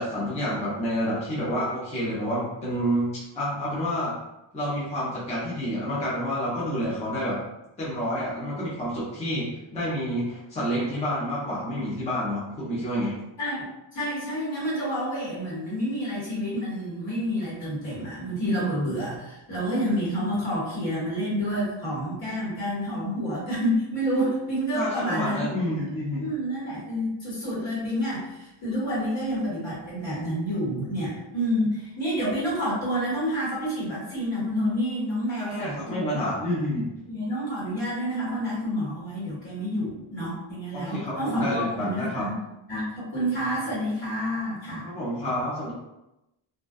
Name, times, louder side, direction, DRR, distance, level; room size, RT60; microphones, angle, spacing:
voice 1, 0.0-4.2 4.5-7.4 7.8-13.2 24.7-26.2 35.3-36.9 40.7-42.3 44.8-45.7, equal, 15° left, -8 dB, 0.5 m, -29 dB
voice 2, 13.9-25.7 26.2-36.1 36.4-36.6 37.1-42.4 42.7-44.9, equal, 60° left, -7 dB, 1.4 m, -29 dB
2.4 x 2.2 x 2.5 m, 0.93 s
wide cardioid pair, 160°, 49 cm